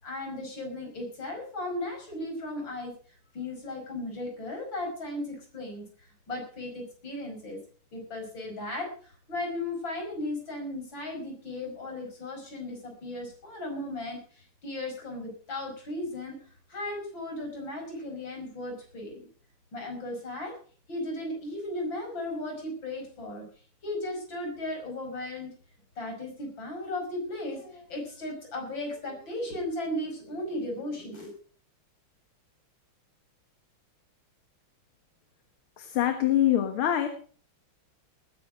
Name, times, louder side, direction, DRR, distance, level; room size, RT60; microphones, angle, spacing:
voice 1, 0.0-2.9 3.3-5.8 6.3-7.6 7.9-16.4 16.7-19.3 19.7-20.5 20.9-23.4 23.8-25.5 26.0-31.3, left 1 dB, 65° left, 2 dB, 6.4 m, -36 dB
voice 2, 35.8-37.1, left 11 dB, 80° left, 8 dB, 2.1 m, -24 dB
19.5 x 10.5 x 4.9 m, 0.43 s
omnidirectional pair, 2.3 m